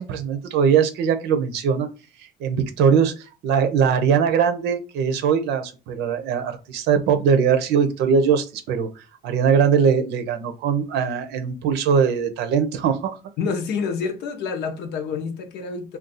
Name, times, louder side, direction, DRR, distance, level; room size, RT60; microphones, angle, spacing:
voice 1, 0.0-1.9 2.4-3.1 3.4-8.9 9.2-13.2, right 7 dB, 85° right, 0.6 m, -21 dB
voice 2, 13.4-16.0, left 5 dB, 80° left, 0.7 m, -28 dB
2.5 x 2.3 x 3.9 m
cardioid pair, 110°, 17 cm